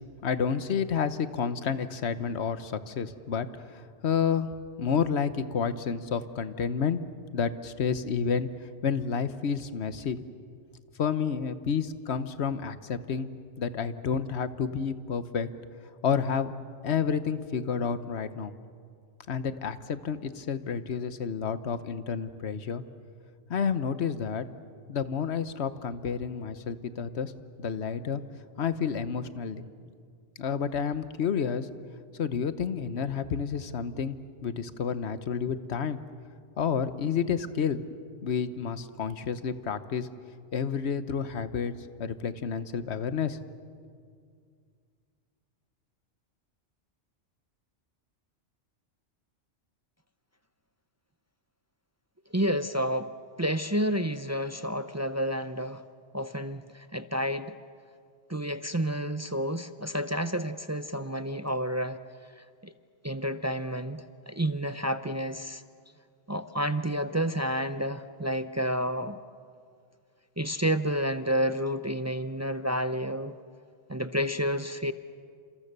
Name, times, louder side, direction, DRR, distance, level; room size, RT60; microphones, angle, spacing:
voice 1, 0.2-3.5 3.7-4.5 4.8-7.0 7.3-8.5 8.8-10.2 11.0-13.3 13.6-15.5 16.0-16.5 16.8-18.5 19.3-22.8 23.5-24.4 24.9-27.3 27.6-28.2 28.6-29.6 30.4-31.7 32.2-34.2 34.4-36.0 36.6-37.8 38.2-40.1 40.5-41.7 42.0-43.4, left 6 dB, 65° left, 12 dB, 1.3 m, -30 dB
voice 2, 52.3-53.1 53.4-55.8 56.1-57.6 58.3-62.0 62.6-62.7 63.0-65.6 66.3-69.2 70.4-73.3 73.9-74.9, equal, 25° right, 11 dB, 0.4 m, -30 dB
29.5 x 27.5 x 6.7 m, 2.2 s
omnidirectional pair, 1.2 m